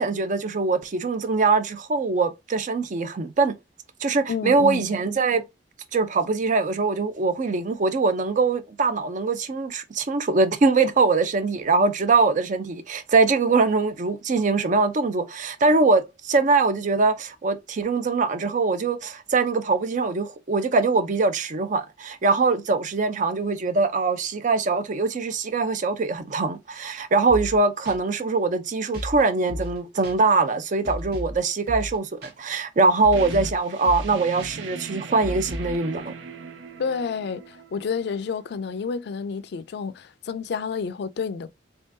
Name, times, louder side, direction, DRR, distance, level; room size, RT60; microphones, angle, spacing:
voice 1, 0.0-3.5 4.0-5.4 5.9-36.1, right 3 dB, 45° right, 0.5 m, -22 dB
voice 2, 4.3-4.8 36.8-41.5, left 5 dB, 60° left, 0.4 m, -29 dB
sound 1, 27.3-27.6 27.9-28.0 28.9-29.2 29.5-29.8 30.0-30.2 30.8-31.4 31.7-32.0 32.2-32.3 33.0-33.6 33.8-34.1 34.4-34.5 35.2-35.8, equal, 60° right, 1.1 m, -33 dB
sound 2, 33.1-38.6, right 4 dB, 85° right, 0.6 m, -39 dB
3.6 x 3.4 x 2.6 m
head